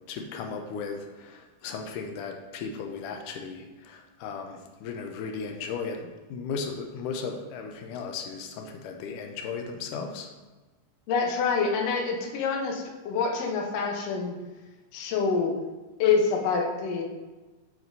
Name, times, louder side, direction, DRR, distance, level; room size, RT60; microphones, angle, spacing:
voice 1, 0.1-10.3, left 5 dB, 85° left, 3 dB, 2.2 m, -36 dB
voice 2, 11.1-14.3 14.9-15.5 16.0-17.0, left 5 dB, 65° left, 0 dB, 1.8 m, -26 dB
9.0 x 6.0 x 2.7 m, 1.2 s
omnidirectional pair, 3.7 m